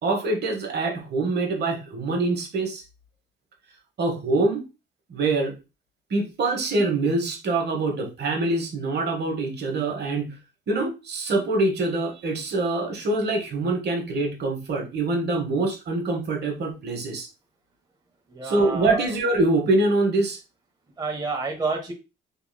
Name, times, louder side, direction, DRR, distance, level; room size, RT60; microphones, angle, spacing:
voice 1, 0.0-2.8 4.0-4.6 5.1-5.5 6.1-10.3 10.7-17.3 18.4-20.4, right 2 dB, 55° right, 2 dB, 1.0 m, -24 dB
voice 2, 18.3-19.0 21.0-21.9, right 4 dB, 20° right, 1 dB, 0.7 m, -29 dB
2.9 x 2.9 x 2.3 m, 0.28 s
cardioid pair, 90°, 20 cm